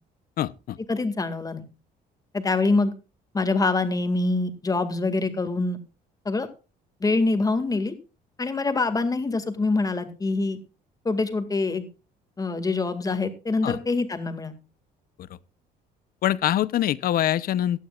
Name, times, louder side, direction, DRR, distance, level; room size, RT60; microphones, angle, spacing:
voice 1, 0.4-0.8 13.6-13.8 16.2-17.8, left 12 dB, 60° left, 0.7 m, -24 dB
voice 2, 0.9-1.6 2.3-2.9 3.3-5.8 6.3-6.5 7.0-7.9 8.4-10.6 11.0-11.9 12.4-14.5, left 3 dB, 20° left, 2.1 m, -25 dB
17.5 x 12.0 x 2.4 m
cardioid pair, 110°, 17 cm